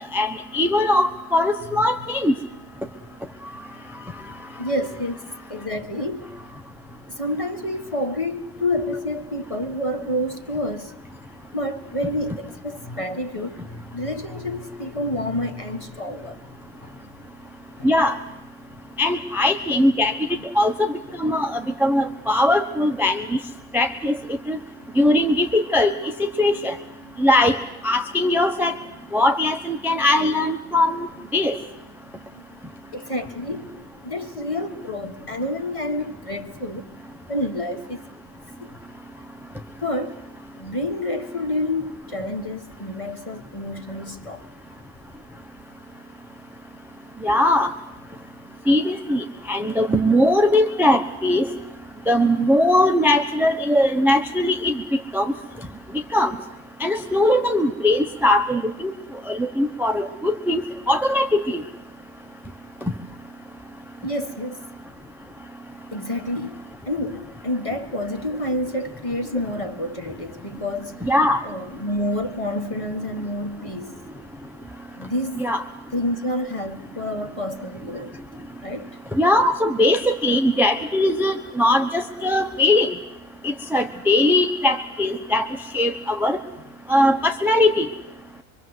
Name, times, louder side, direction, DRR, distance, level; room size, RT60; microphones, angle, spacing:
voice 1, 0.1-2.3 17.8-18.2 19.0-20.1 20.5-20.9 21.2-23.4 23.7-24.6 24.9-25.9 26.2-26.8 27.2-27.6 27.8-28.7 29.1-31.1 31.3-31.6 47.2-47.7 48.7-51.5 52.1-55.3 56.1-56.4 56.8-58.9 59.3-61.6 71.0-71.4 75.3-75.6 79.1-82.9 83.4-85.5 85.7-86.4 86.9-87.9, left 1 dB, ahead, 1.0 m, -20 dB
voice 2, 4.6-5.2 5.5-6.3 7.1-10.9 11.5-16.9 17.8-17.9 20.4-20.5 27.0-27.3 32.3-32.4 32.9-36.9 37.1-38.0 38.6-38.8 39.8-40.2 40.5-44.4 48.4-48.5 64.0-64.6 65.9-71.0 71.4-74.0 74.9-75.4 75.9-78.2 78.6-78.9, left 1 dB, 25° left, 1.6 m, -29 dB
24.5 x 24.0 x 8.0 m
omnidirectional pair, 1.4 m